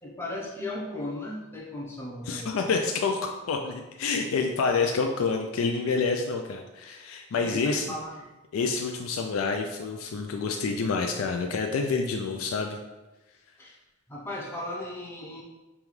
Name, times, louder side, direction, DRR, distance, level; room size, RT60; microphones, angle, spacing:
voice 1, 0.0-2.6 7.4-8.3 13.6-13.8 14.1-15.4, left 1 dB, 10° left, -3 dB, 0.6 m, -36 dB
voice 2, 2.3-7.9 8.5-12.8, left 4 dB, 85° left, 3 dB, 0.3 m, -28 dB
5.3 x 2.3 x 3.1 m, 1.1 s
head